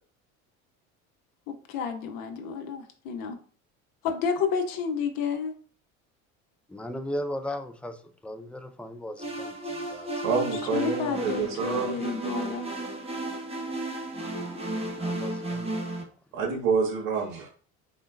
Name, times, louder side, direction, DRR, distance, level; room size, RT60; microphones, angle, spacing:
voice 1, 1.5-3.4 4.0-5.5 10.7-12.7, left 6 dB, 55° left, 5 dB, 1.1 m, -30 dB
voice 2, 6.7-10.1 14.5-14.6 14.9-15.7, left 1 dB, 5° left, 7 dB, 0.5 m, -37 dB
sound 1, 9.2-16.0, right 2 dB, 15° right, 1.2 m, -33 dB
voice 3, 10.2-12.0 16.3-17.5, right 5 dB, 55° right, 0 dB, 1.9 m, -27 dB
4.1 x 3.6 x 2.6 m, 0.43 s
hypercardioid pair, 65°, 40 cm